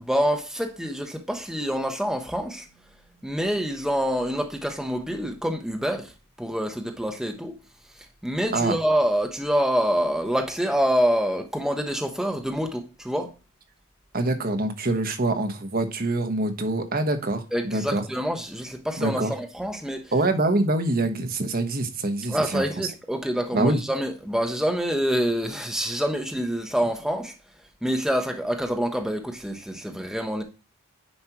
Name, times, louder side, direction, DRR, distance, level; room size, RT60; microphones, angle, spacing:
voice 1, 0.0-2.7 3.2-6.1 6.4-7.6 8.2-13.3 17.5-20.1 22.3-27.3 27.8-30.4, equal, ahead, 1.1 m, -26 dB
voice 2, 14.1-18.0 19.0-19.3 20.1-22.9 23.5-23.8, right 2 dB, 40° right, 1.3 m, -25 dB
9.8 x 5.4 x 2.9 m
head